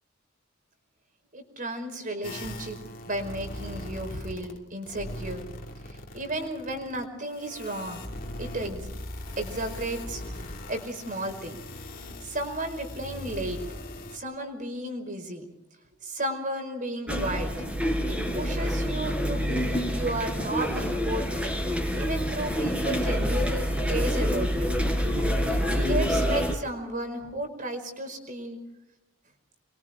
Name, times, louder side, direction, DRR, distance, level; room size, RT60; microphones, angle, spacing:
voice 1, 1.3-2.8 3.1-5.5 5.9-8.1 8.4-8.9 9.4-10.2 10.7-11.6 12.2-13.6 14.1-15.5 16.0-17.7 18.1-21.2 21.6-24.7 25.5-28.6, right 1 dB, 40° right, 5 dB, 5.1 m, -33 dB
sound 1, 2.2-4.6 4.8-14.2, left 1 dB, 45° left, 2.8 m, -40 dB
sound 2, 17.1-26.5, equal, 5° right, 4.4 m, -27 dB
28.0 x 23.5 x 4.5 m, 0.90 s
head